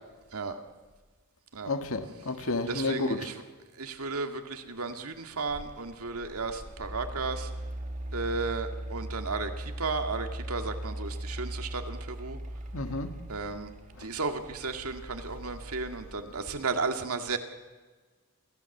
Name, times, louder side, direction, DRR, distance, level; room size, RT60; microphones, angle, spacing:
voice 1, 1.7-3.3 12.7-13.1, left 2 dB, 70° left, 7 dB, 1.9 m, -31 dB
voice 2, 2.7-3.4 3.8-7.5 8.1-12.4 13.3-13.7 14.0-17.4, right 4 dB, 90° right, 6 dB, 2.1 m, -34 dB
Mechanical fan, 5.0-16.3, right 1 dB, 35° right, 1.5 m, -39 dB
27.5 x 15.5 x 7.3 m, 1.3 s
head